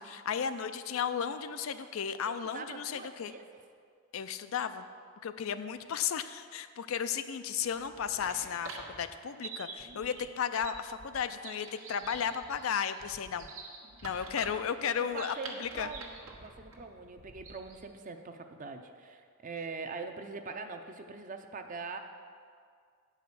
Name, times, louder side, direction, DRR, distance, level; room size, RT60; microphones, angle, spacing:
voice 1, 0.0-3.3 4.1-4.9 5.2-13.5 14.0-15.9, left 7 dB, 80° left, 11 dB, 0.4 m, -34 dB
voice 2, 2.2-3.4 9.8-10.1 14.3-14.7 15.0-22.0, right 4 dB, 40° right, 6 dB, 0.6 m, -43 dB
sound 1, 7.6-17.9, right 4 dB, 85° right, 1.3 m, -47 dB
8.9 x 4.9 x 6.9 m, 2.2 s
head